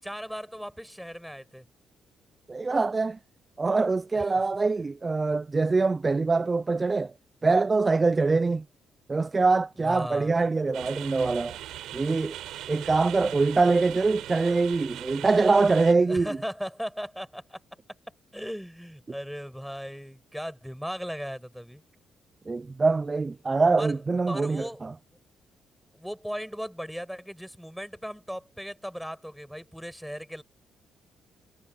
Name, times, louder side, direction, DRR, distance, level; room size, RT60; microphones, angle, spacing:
voice 1, 0.0-1.7 4.1-4.3 9.8-10.4 16.1-17.6 18.3-21.8 23.8-24.0 24.3-24.9 25.9-30.4, equal, ahead, 7.3 m, -37 dB
voice 2, 2.5-3.2 3.6-7.1 7.4-8.6 9.1-11.6 11.9-12.4 12.7-16.3 22.5-24.9, right 3 dB, 25° right, 0.4 m, -24 dB
sound 1, 10.7-15.9, right 13 dB, 85° right, 4.4 m, -40 dB
cardioid pair, 90°, 0 cm